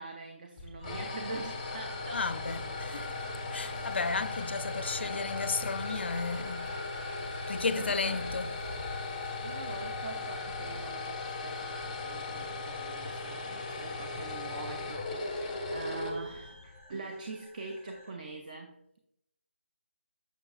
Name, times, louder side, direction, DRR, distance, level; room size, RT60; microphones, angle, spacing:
voice 1, 0.0-2.2 4.9-5.6 7.7-8.2 9.4-19.0, right 3 dB, 40° right, 0.5 m, -44 dB
sound 1, 0.6-16.8, left 3 dB, 20° left, 0.7 m, -38 dB
sound 2, 0.8-18.1, left 1 dB, 20° right, 1.1 m, -49 dB
voice 2, 2.1-6.7 7.5-8.6, left 4 dB, 55° left, 0.4 m, -34 dB
sound 3, 2.3-10.9, right 1 dB, 70° right, 2.4 m, -49 dB
6.5 x 6.2 x 2.3 m
figure-of-eight pair, 165°, 7 cm